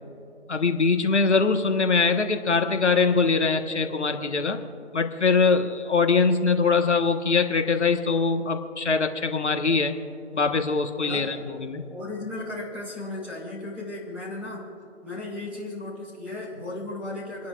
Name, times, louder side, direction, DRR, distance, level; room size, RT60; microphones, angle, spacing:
voice 1, 0.5-4.6 4.9-10.0 10.3-11.8, left 4 dB, 70° left, 5 dB, 1.5 m, -22 dB
voice 2, 11.0-11.3 11.9-14.7 15.0-17.5, left 2 dB, 5° right, -8 dB, 2.0 m, -35 dB
29.0 x 12.0 x 2.5 m, 2.8 s
figure-of-eight pair, 170°, 36 cm